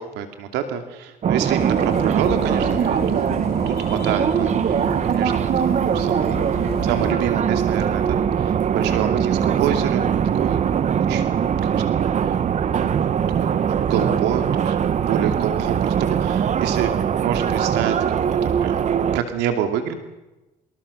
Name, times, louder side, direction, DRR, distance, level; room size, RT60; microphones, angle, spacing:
voice 1, 0.0-3.3 3.7-6.4 6.8-10.1 10.3-10.6 11.0-12.4 12.7-12.9 13.4-14.8 15.0-19.9, right 9 dB, 90° right, 7 dB, 2.6 m, -27 dB
sound 1, 1.2-19.2, right 8 dB, 45° right, 1.1 m, -21 dB
sound 2, 1.6-7.1, left 8 dB, 70° left, 3.1 m, -34 dB
25.0 x 21.5 x 6.8 m, 1.0 s
cardioid pair, 110°, 17 cm